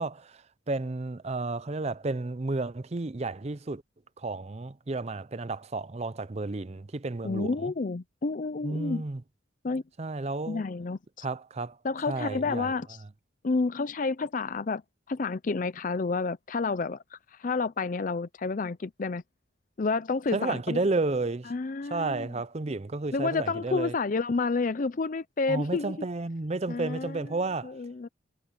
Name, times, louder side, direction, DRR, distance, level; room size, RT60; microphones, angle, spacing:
voice 1, 0.0-3.8 4.2-7.7 8.6-9.2 10.0-10.6 11.2-11.8 12.1-12.7 20.3-21.5 21.9-23.9 25.5-27.7, right 3 dB, 35° right, 0.6 m, -32 dB
voice 2, 7.2-9.0 9.6-9.8 10.5-11.3 11.8-13.0 13.4-14.8 15.1-19.2 19.8-20.8 21.5-22.3 23.1-26.0 26.7-28.1, left 4 dB, 40° left, 0.5 m, -30 dB
head